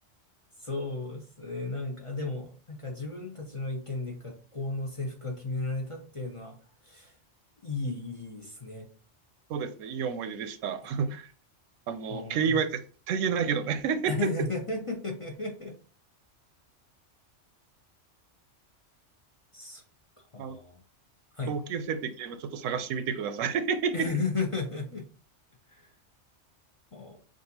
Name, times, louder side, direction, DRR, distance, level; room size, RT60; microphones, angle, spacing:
voice 1, 0.6-6.6 6.8-7.2 7.6-8.9 12.1-12.6 14.0-15.8 19.5-19.8 20.3-20.8 21.3-21.6 23.9-25.1 25.7-25.9 26.9-27.2, left 3 dB, 35° left, 0 dB, 0.6 m, -34 dB
voice 2, 9.5-11.3 11.9-12.8 13.1-14.1 20.4-20.6 21.5-24.1, right 6 dB, 90° right, 12 dB, 1.0 m, -30 dB
6.0 x 2.5 x 2.8 m, 0.39 s
omnidirectional pair, 1.3 m